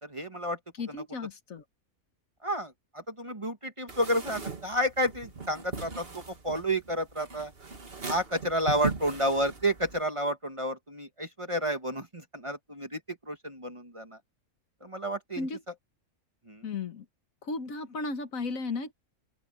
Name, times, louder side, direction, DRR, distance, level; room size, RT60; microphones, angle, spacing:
voice 1, 0.0-0.6 0.9-1.0 2.4-7.5 8.1-14.2 14.8-15.5 16.4-16.6, equal, 20° right, 1.5 m, -31 dB
voice 2, 0.8-1.6 15.4-15.6 16.6-17.0 17.4-18.9, left 3 dB, 65° left, 1.7 m, -34 dB
sound 1, 3.9-10.0, right 4 dB, 40° right, 2.1 m, -39 dB
open air
omnidirectional pair, 1.6 m